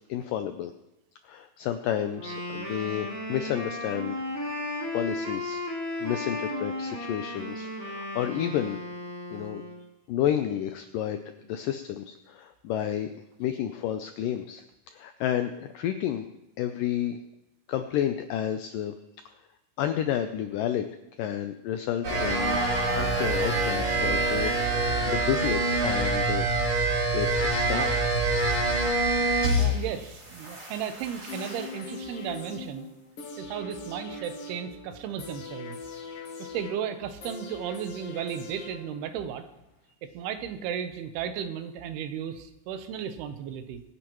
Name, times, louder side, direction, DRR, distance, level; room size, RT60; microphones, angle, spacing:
voice 1, 0.1-0.7 1.2-4.2 4.9-5.6 6.0-8.8 9.3-9.6 10.1-11.2 11.5-13.1 13.4-14.6 14.9-16.3 16.6-17.2 17.7-18.9 19.8-20.9 21.2-22.6 22.9-26.5 27.1-28.2, left 10 dB, 85° left, 8 dB, 1.9 m, -30 dB
Wind instrument woodwind instrument, 2.1-9.9, left 1 dB, 15° right, 2.6 m, -35 dB
sound 1, 22.0-29.9 30.2-31.7, right 2 dB, 40° right, 4.1 m, -26 dB
voice 2, 29.6-32.9 33.4-35.8 36.4-39.4 40.1-43.8, right 8 dB, 85° right, 9 dB, 2.9 m, -35 dB
sound 2, 31.3-39.3 39.6-39.7, left 3 dB, 55° left, 1.7 m, -41 dB
23.5 x 10.0 x 3.1 m, 0.93 s
omnidirectional pair, 4.6 m